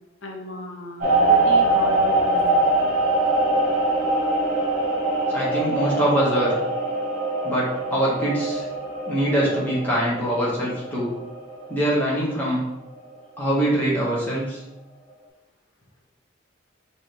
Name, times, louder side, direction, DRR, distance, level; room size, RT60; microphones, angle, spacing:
voice 1, 0.2-2.7, left 1 dB, 70° left, 1 dB, 0.7 m, -36 dB
sound 1, 1.0-12.3 12.7-13.1, right 2 dB, 40° right, 1.4 m, -23 dB
voice 2, 5.3-6.5 7.4-8.6 9.1-11.1 11.7-12.6 13.4-14.6, right 1 dB, 10° left, -7 dB, 1.1 m, -23 dB
4.6 x 2.8 x 3.4 m, 0.92 s
head